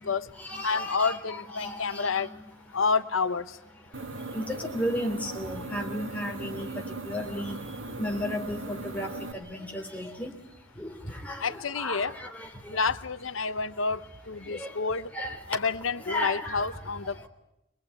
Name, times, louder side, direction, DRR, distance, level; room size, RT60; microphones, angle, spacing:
voice 1, 0.0-2.4 3.9-12.8 14.4-14.8 15.1-15.6 16.1-16.7 17.1-17.3, left 1 dB, 5° left, 1 dB, 3.2 m, -35 dB
voice 2, 0.6-2.3 2.7-3.6 11.4-12.1 12.7-15.1 15.5-17.3, left 4 dB, 90° left, 12 dB, 1.0 m, -29 dB
sound 1, 3.9-9.3, right 2 dB, 75° right, 2.0 m, -38 dB
24.5 x 20.0 x 9.3 m, 0.85 s
head